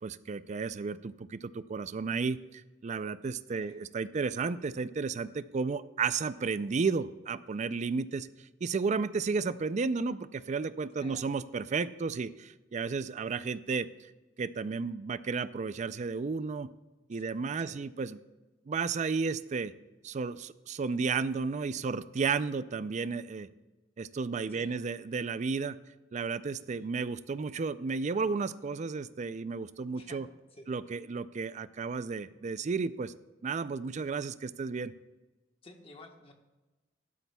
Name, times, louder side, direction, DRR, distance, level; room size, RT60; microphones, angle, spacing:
voice 1, 0.0-8.3 8.6-13.9 14.4-16.7 17.1-18.2 18.7-19.7 20.0-23.5 24.0-25.8 26.1-30.2 30.7-33.1 33.4-34.9, right 4 dB, 40° right, 15 dB, 0.4 m, -33 dB
voice 2, 24.5-24.9 26.7-26.9 29.9-30.9 35.6-36.3, left 2 dB, 30° left, 3 dB, 1.3 m, -53 dB
14.5 x 12.5 x 2.3 m, 1.1 s
head